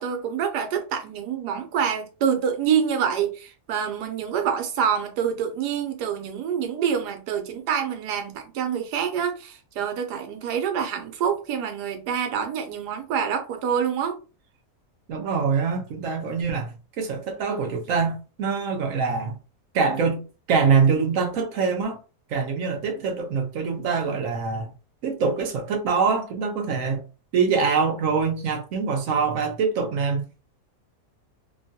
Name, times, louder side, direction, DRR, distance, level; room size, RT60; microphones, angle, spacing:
voice 1, 0.0-14.2, right 7 dB, 90° right, 1.2 m, -26 dB
voice 2, 15.1-19.4 19.7-20.2 20.5-22.0 22.3-24.7 25.0-27.0 27.3-30.3, right 5 dB, 65° right, 0.9 m, -24 dB
2.9 x 2.2 x 2.6 m
omnidirectional pair, 1.7 m